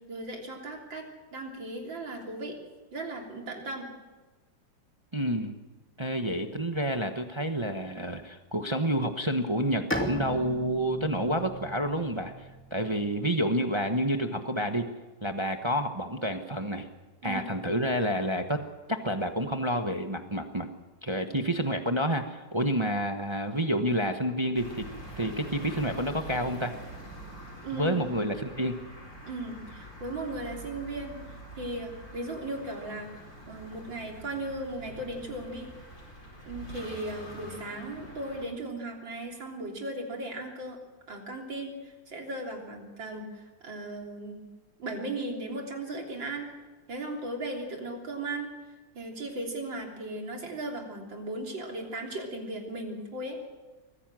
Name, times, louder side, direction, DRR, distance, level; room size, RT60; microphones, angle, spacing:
voice 1, 0.1-1.0 1.3-2.6 2.9-3.9 17.2-17.5 27.6-28.3 29.3-33.1 33.5-35.7 36.5-40.8 41.1-44.4 44.8-46.5 46.9-48.5 49.0-53.4, right 2 dB, 85° right, 1 dB, 4.1 m, -37 dB
voice 2, 5.1-5.5 6.0-12.3 12.7-14.9 15.2-16.9 17.2-18.6 18.9-20.7 21.0-24.8 25.2-26.7 27.7-28.8, equal, 20° right, 6 dB, 1.0 m, -29 dB
Bowed string instrument, 9.9-13.5, right 1 dB, 5° left, 2.4 m, -37 dB
sound 1, 24.5-38.5, equal, 40° left, 5.2 m, -45 dB
23.5 x 15.5 x 7.7 m, 1.2 s
omnidirectional pair, 2.0 m